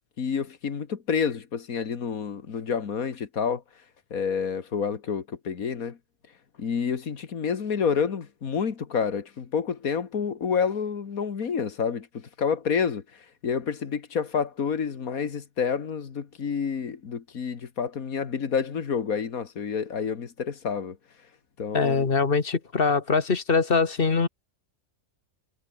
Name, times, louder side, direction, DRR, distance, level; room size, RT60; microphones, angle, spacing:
voice 1, 0.2-3.6 4.1-6.0 6.6-21.0 21.6-22.1, left 6 dB, 85° left, 2.1 m, -29 dB
voice 2, 21.7-24.3, left 4 dB, 45° left, 1.7 m, -23 dB
omnidirectional pair, 1.4 m